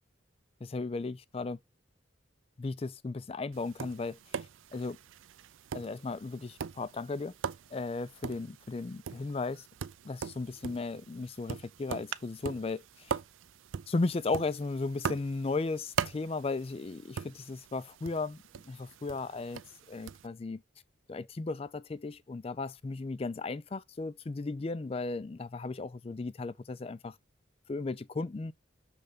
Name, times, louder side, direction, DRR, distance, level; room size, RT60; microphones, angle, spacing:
voice 1, 0.6-1.6 2.6-4.2 4.7-5.0 5.7-7.3 7.7-9.7 10.0-13.2 13.9-19.6 19.9-20.6 21.1-27.2 27.7-28.5, left 3 dB, 30° left, 0.3 m, -35 dB
Tap, 3.5-20.3, right 7 dB, 75° right, 0.4 m, -41 dB
6.6 x 3.4 x 5.0 m
head